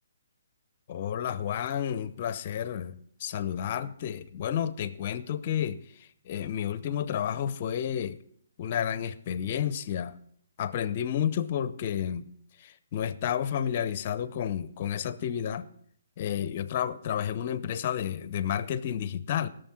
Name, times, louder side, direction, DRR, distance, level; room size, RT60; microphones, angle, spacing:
voice 1, 0.9-8.2 8.6-10.1 10.6-12.2 12.6-15.7 16.2-19.5, left 9 dB, 40° left, 15 dB, 0.7 m, -31 dB
17.5 x 6.7 x 4.4 m, 0.63 s
hypercardioid pair, 150°, 0 cm